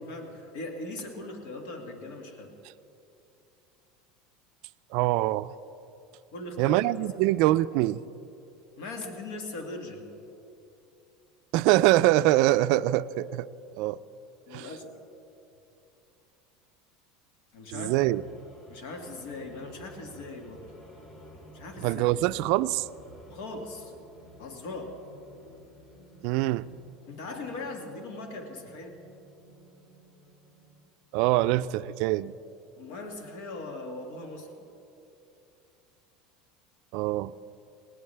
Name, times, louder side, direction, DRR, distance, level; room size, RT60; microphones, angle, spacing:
voice 1, 0.1-2.5 6.3-7.1 8.8-10.1 14.5-14.9 17.5-18.0 18.7-20.7 21.5-22.0 23.3-23.9 24.4-25.0 27.1-29.0 32.8-34.7, left 2 dB, 75° left, 3 dB, 2.1 m, -39 dB
voice 2, 4.9-5.5 6.6-8.0 11.5-13.5 13.8-14.0 14.5-14.7 17.7-18.2 21.8-22.9 26.2-26.6 31.1-32.3 36.9-37.3, right 16 dB, 65° right, 15 dB, 0.3 m, -24 dB
sound 1, 17.7-30.9, equal, 45° left, 3.9 m, -53 dB
19.5 x 19.0 x 3.4 m, 2.9 s
supercardioid pair, 125°, 0 cm